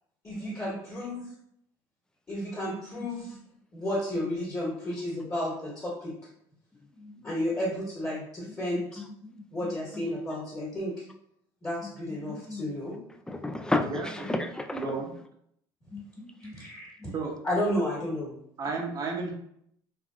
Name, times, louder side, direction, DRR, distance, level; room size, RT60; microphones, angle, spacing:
voice 1, 0.2-1.2 2.3-3.4 3.7-6.1 7.2-9.0 9.5-11.0 11.6-13.0 16.5-17.1 17.4-18.3, left 1 dB, 25° left, -7 dB, 1.3 m, -32 dB
voice 2, 12.3-12.6 13.3-14.9 15.9-16.5, left 2 dB, 5° left, 6 dB, 0.3 m, -32 dB
voice 3, 13.8-14.4 14.7-15.1 17.1-17.3 18.6-19.3, right 4 dB, 40° right, 1 dB, 0.7 m, -33 dB
3.3 x 2.3 x 2.4 m, 0.70 s
supercardioid pair, 90°, 10 cm